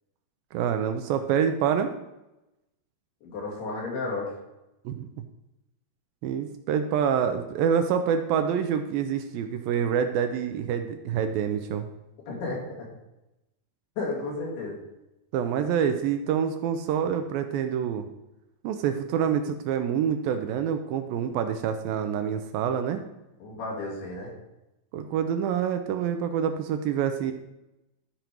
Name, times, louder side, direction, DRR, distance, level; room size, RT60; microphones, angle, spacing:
voice 1, 0.5-1.9 4.9-5.1 6.2-11.9 15.3-18.1 18.6-23.0 24.9-27.3, right 8 dB, 80° right, 7 dB, 2.2 m, -26 dB
voice 2, 3.2-4.3 12.3-12.9 14.0-14.8 23.4-24.3, left 3 dB, 85° left, -3 dB, 4.5 m, -33 dB
13.0 x 5.2 x 4.5 m, 0.95 s
omnidirectional pair, 4.5 m